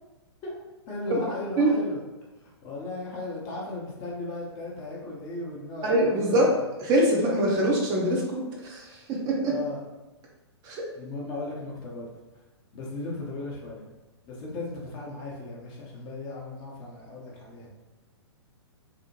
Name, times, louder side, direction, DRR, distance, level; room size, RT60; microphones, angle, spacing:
voice 1, 0.9-2.0 2.4-6.7 9.4-9.8 10.9-12.1 12.7-13.9 14.3-17.7, left 2 dB, 30° left, -3 dB, 0.7 m, -36 dB
voice 2, 5.8-6.5 6.8-9.5 10.6-10.8, right 1 dB, 25° right, -2 dB, 0.5 m, -24 dB
2.7 x 2.1 x 2.8 m, 1.1 s
figure-of-eight pair, 115°, 14 cm